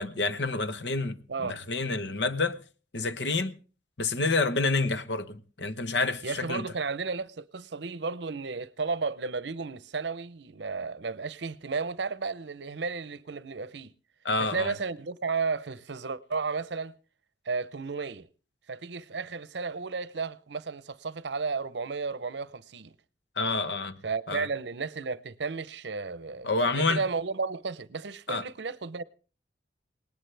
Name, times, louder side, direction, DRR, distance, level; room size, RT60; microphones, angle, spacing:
voice 1, 0.0-2.6 2.9-3.5 4.0-6.7 14.2-14.7 23.4-24.0 24.3-24.5 26.4-27.0 28.3-28.4, left 3 dB, 70° left, 1.1 m, -28 dB
voice 2, 6.2-13.9 14.4-17.0 17.4-18.3 18.7-23.0 24.0-29.0, right 4 dB, 70° right, 0.7 m, -33 dB
19.5 x 19.0 x 3.4 m
head